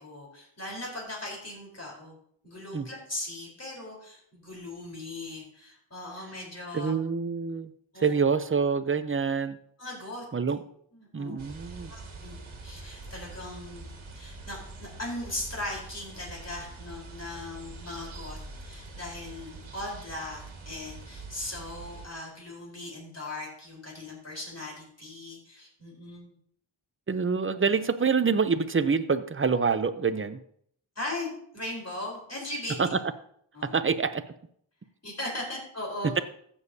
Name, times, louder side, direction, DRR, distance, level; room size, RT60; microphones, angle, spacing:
voice 1, 0.0-2.2 2.4-6.9 7.9-8.2 9.8-10.5 10.9-11.4 11.9-13.9 14.1-26.3 31.0-32.9 33.5-33.8 35.0-36.1, left 1 dB, 30° left, -2 dB, 4.0 m, -39 dB
voice 2, 6.7-7.7 8.0-9.6 10.3-10.6 11.1-11.9 27.1-30.4 32.8-33.0 33.7-34.2, right 5 dB, 25° right, 12 dB, 0.6 m, -26 dB
sound 1, 11.4-22.1, right 3 dB, 75° right, 1.7 m, -44 dB
14.5 x 7.2 x 2.8 m, 0.65 s
wide cardioid pair, 90°, 48 cm